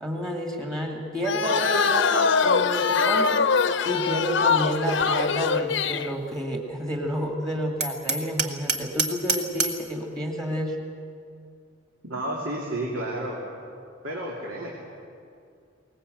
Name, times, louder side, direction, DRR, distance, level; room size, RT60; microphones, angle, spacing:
voice 1, 0.0-3.5 3.8-10.8, equal, 20° right, 1 dB, 2.1 m, -30 dB
sound 1, 1.2-6.1, left 5 dB, 65° left, 0.7 m, -23 dB
Hammer, 7.8-9.9, right 5 dB, 55° right, 1.4 m, -27 dB
voice 2, 12.0-13.4 14.0-14.7, right 1 dB, 90° right, -3 dB, 3.1 m, -31 dB
22.0 x 19.0 x 7.9 m, 2.4 s
head